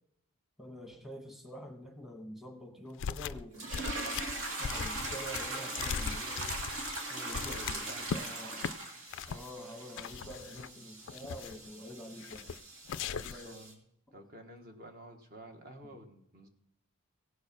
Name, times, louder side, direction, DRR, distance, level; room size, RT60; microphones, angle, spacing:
voice 1, 0.6-3.7 4.6-6.6 7.1-8.8 9.3-12.6 13.2-13.6, equal, ahead, 3 dB, 1.1 m, -47 dB
sound 1, 3.0-3.4 3.7-8.2 8.6-8.7 9.1-9.5 10.0-10.7 11.1-11.7 12.2-12.6 12.9-13.5, left 7 dB, 55° left, 0.4 m, -39 dB
sound 2, 3.5-13.7, right 2 dB, 65° right, 2.2 m, -40 dB
voice 2, 7.3-8.1 13.0-13.8 14.1-16.5, equal, 40° right, 4 dB, 1.3 m, -51 dB
16.5 x 6.4 x 6.0 m, 0.74 s
head